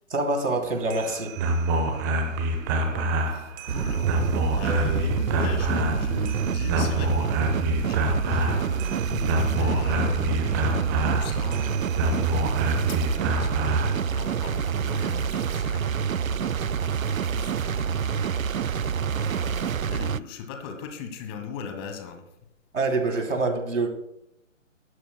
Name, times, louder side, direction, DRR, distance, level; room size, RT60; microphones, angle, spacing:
voice 1, 0.1-1.4 22.7-23.9, right 3 dB, 65° right, 4 dB, 3.2 m, -25 dB
sound 1, 0.7-14.0, right 1 dB, 15° right, 0.9 m, -27 dB
voice 2, 2.7-22.2, left 6 dB, 20° left, 6 dB, 1.3 m, -39 dB
sound 2, 3.7-20.2, right 7 dB, 80° right, 0.5 m, -27 dB
19.5 x 12.5 x 2.2 m, 0.81 s
figure-of-eight pair, 135°, 40 cm